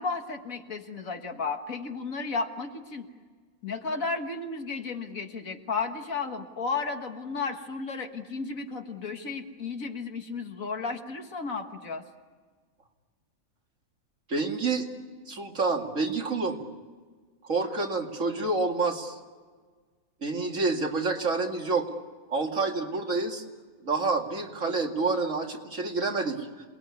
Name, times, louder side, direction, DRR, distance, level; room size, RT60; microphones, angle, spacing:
voice 1, 0.0-3.1 3.6-12.0, left 4 dB, 65° left, 5 dB, 2.0 m, -33 dB
voice 2, 14.3-14.9 15.3-16.6 17.4-19.2 20.2-22.0 22.3-23.4 23.8-26.5, right 3 dB, 60° right, 2 dB, 2.6 m, -28 dB
27.5 x 20.0 x 9.6 m, 1.5 s
omnidirectional pair, 1.5 m